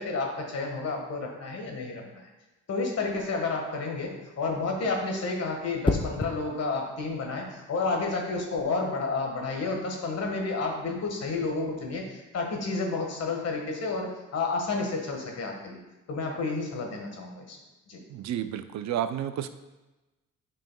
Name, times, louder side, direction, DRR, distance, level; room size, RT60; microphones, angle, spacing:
voice 1, 0.0-2.3 2.7-15.8 16.1-17.6 17.9-18.0, left 3 dB, 55° left, 1 dB, 1.6 m, -31 dB
sound 1, 3.0-3.4 5.8-6.4 8.4-8.6, left 3 dB, 15° left, 0.5 m, -29 dB
voice 2, 18.1-19.5, right 10 dB, 65° right, 11 dB, 0.5 m, -31 dB
9.0 x 5.4 x 2.3 m, 1.1 s
cardioid pair, 90°, 30 cm